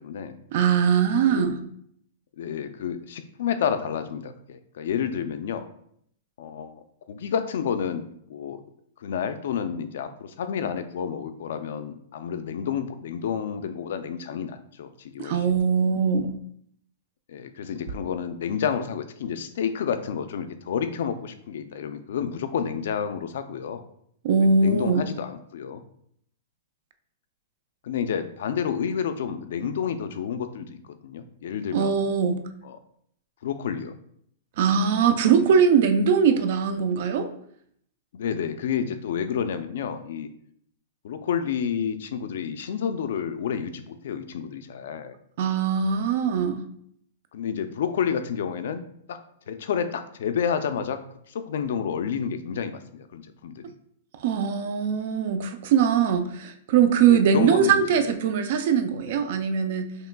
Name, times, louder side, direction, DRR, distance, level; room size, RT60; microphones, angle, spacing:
voice 1, 0.0-0.3 1.3-1.5 2.4-5.6 6.4-8.0 8.3-8.6 9.0-15.4 17.3-23.8 24.4-25.8 27.8-30.8 31.0-32.0 32.6-32.8 33.4-33.9 38.1-40.3 41.0-45.2 47.3-49.2 49.5-51.0 51.3-53.6 57.1-58.1, left 7 dB, 60° left, 10 dB, 0.4 m, -30 dB
voice 2, 0.5-1.6 15.2-16.3 24.2-25.1 31.7-32.4 34.6-37.3 45.4-46.6 54.2-60.0, right 6 dB, 40° right, 9 dB, 0.4 m, -21 dB
5.7 x 3.0 x 2.2 m, 0.68 s
supercardioid pair, 180°, 0 cm